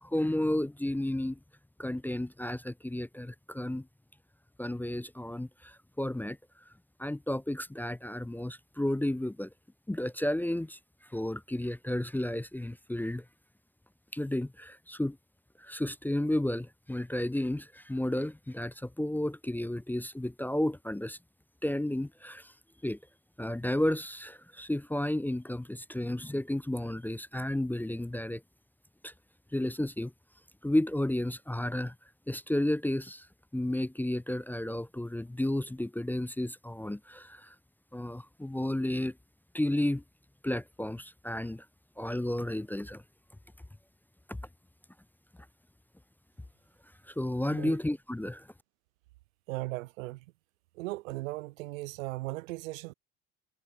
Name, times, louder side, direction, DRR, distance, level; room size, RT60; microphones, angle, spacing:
voice 1, 0.0-1.4 1.8-3.9 4.6-6.4 7.0-9.5 9.9-10.8 11.1-13.2 14.1-15.2 15.6-21.2 21.6-22.5 22.8-23.0 23.4-28.4 29.0-29.1 29.5-30.1 30.6-31.9 32.3-33.3 33.5-37.5 37.9-39.1 39.5-40.0 40.4-41.7 42.0-43.0 44.3-44.4 47.1-48.5, left 1 dB, 5° left, 0.6 m, -32 dB
voice 2, 49.5-50.2 50.8-52.9, right 20 dB, 80° right, 0.9 m, -37 dB
hypercardioid pair, 75°, 39 cm